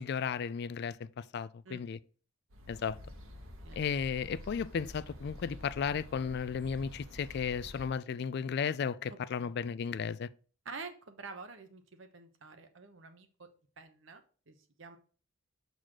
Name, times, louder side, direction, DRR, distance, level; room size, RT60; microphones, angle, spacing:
voice 1, 0.0-2.0 2.7-3.0 3.7-10.3, left 6 dB, 55° left, 0.3 m, -34 dB
sound 1, 2.5-7.9, left 1 dB, 90° right, 1.3 m, -48 dB
voice 2, 9.1-9.5 10.6-13.5 13.8-15.0, right 4 dB, 65° right, 0.9 m, -48 dB
6.4 x 4.0 x 6.0 m
head